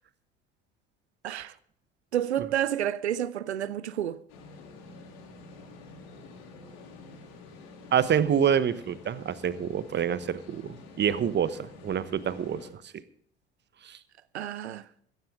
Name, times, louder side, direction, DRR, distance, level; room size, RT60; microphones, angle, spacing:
voice 1, 2.1-4.2 14.3-14.8, right 11 dB, 85° right, 0.7 m, -30 dB
sound 1, 4.3-12.7, left 3 dB, 65° left, 3.0 m, -48 dB
voice 2, 7.9-12.7 13.8-14.0, right 8 dB, 35° right, 1.1 m, -27 dB
15.0 x 15.0 x 3.7 m
figure-of-eight pair, 65°, 32 cm